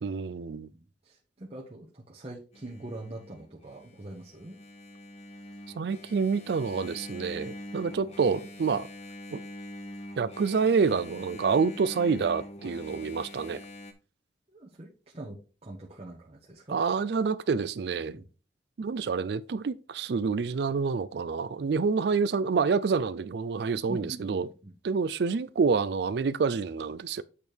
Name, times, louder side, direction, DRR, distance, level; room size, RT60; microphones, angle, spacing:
voice 1, 0.0-0.7 5.8-8.9 9.3-9.4 10.2-13.6 16.7-18.2 18.8-24.5 24.8-27.2, right 5 dB, 65° right, 0.4 m, -27 dB
voice 2, 0.7-4.6 7.3-7.4 14.5-16.8 18.1-18.2 23.9-24.7, right 1 dB, 35° right, 1.1 m, -43 dB
Engine, 2.5-13.9, left 1 dB, 35° left, 0.9 m, -44 dB
8.3 x 3.5 x 4.4 m
head